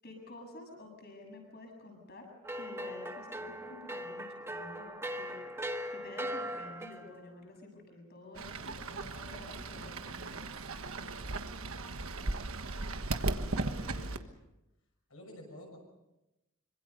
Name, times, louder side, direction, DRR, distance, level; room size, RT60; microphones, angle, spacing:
voice 1, 0.0-2.3 2.5-5.5 5.9-11.1, left 2 dB, 45° left, 2 dB, 7.4 m, -50 dB
sound 1, 2.4-7.2, equal, 10° right, 1.5 m, -39 dB
Fowl / Bird, 8.3-14.2, right 2 dB, 75° right, 1.4 m, -37 dB
voice 2, 13.5-14.3 15.1-15.8, left 1 dB, 75° left, 0 dB, 6.3 m, -51 dB
26.0 x 25.0 x 5.4 m, 0.94 s
head